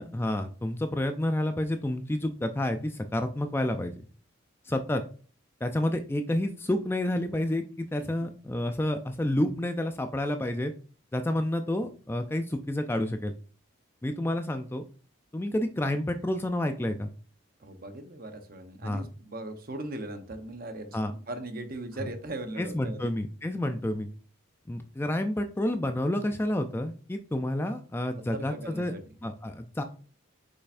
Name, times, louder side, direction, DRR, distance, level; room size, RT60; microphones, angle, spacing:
voice 1, 0.0-3.9 4.7-5.0 5.6-10.7 11.1-13.3 14.0-14.8 15.3-17.1 18.8-19.0 20.9-21.1 22.6-24.1 24.7-28.9 29.2-29.8, left 1 dB, 10° left, 7 dB, 0.3 m, -29 dB
voice 2, 17.6-23.1 28.3-29.0, right 1 dB, 45° right, 8 dB, 0.9 m, -39 dB
6.7 x 5.5 x 2.5 m, 0.39 s
head